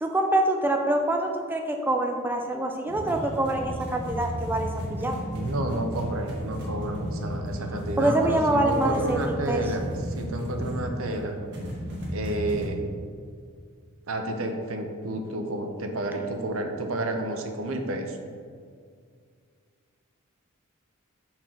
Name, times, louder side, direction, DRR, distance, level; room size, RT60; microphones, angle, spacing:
voice 1, 0.0-5.2 8.0-9.6, right 1 dB, 10° right, 3 dB, 0.3 m, -25 dB
sound 1, 2.9-12.7, equal, 55° right, 1.5 m, -34 dB
voice 2, 5.3-11.4 12.1-12.8 14.1-18.2, right 1 dB, 75° right, 4 dB, 0.7 m, -30 dB
5.7 x 4.5 x 3.8 m, 2.1 s
head